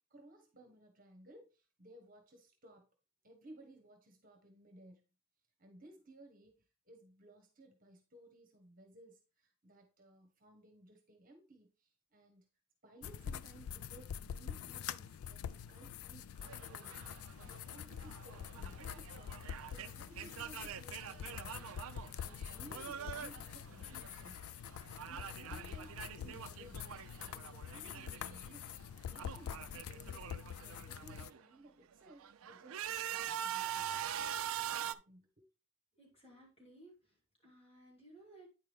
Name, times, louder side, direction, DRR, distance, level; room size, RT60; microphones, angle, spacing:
voice 1, 0.1-2.9 3.2-5.0 5.6-12.5 12.8-17.0 17.3-21.6 22.2-24.4 25.0-26.9 27.2-28.7 29.0-30.3 30.6-33.9 34.7-35.5, right 1 dB, 40° right, 1.2 m, -59 dB
sound 1, 13.0-31.3, left 8 dB, 75° left, 0.3 m, -46 dB
sound 2, 16.4-24.4 24.7-28.5 28.7-31.4 31.9-34.9, right 10 dB, 70° right, 0.4 m, -44 dB
voice 2, 35.9-38.5, right 1 dB, 25° left, 2.8 m, -59 dB
9.2 x 4.7 x 3.5 m
head